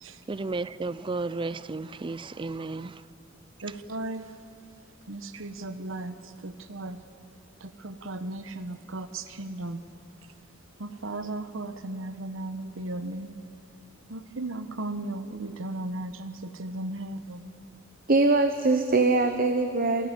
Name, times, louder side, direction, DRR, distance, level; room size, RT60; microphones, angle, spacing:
voice 1, 0.3-3.0, right 3 dB, 25° right, 0.4 m, -33 dB
voice 2, 3.6-4.4 5.1-7.0 7.6-9.8 10.8-13.4 14.1-17.5, right 2 dB, 75° right, 1.1 m, -36 dB
voice 3, 18.1-20.1, right 3 dB, 45° right, 0.9 m, -22 dB
25.5 x 14.5 x 8.2 m
head